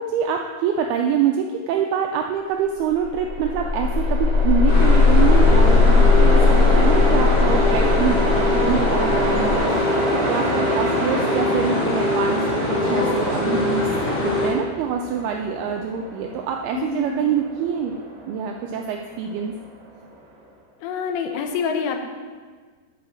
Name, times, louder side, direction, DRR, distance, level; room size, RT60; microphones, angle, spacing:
voice 1, 0.0-13.9 14.2-18.0 18.3-19.5, right 7 dB, 85° right, 3 dB, 2.2 m, -25 dB
Train, 2.9-20.1, right 1 dB, 70° right, 4.1 m, -29 dB
sound 1, 3.0-12.9, left 4 dB, 5° left, 2.2 m, -19 dB
sound 2, 4.7-14.5, left 2 dB, 45° left, 2.1 m, -23 dB
voice 2, 16.7-17.2 20.8-22.0, left 5 dB, 85° left, 5 dB, 3.1 m, -26 dB
10.0 x 5.2 x 6.3 m, 1.5 s
omnidirectional pair, 5.0 m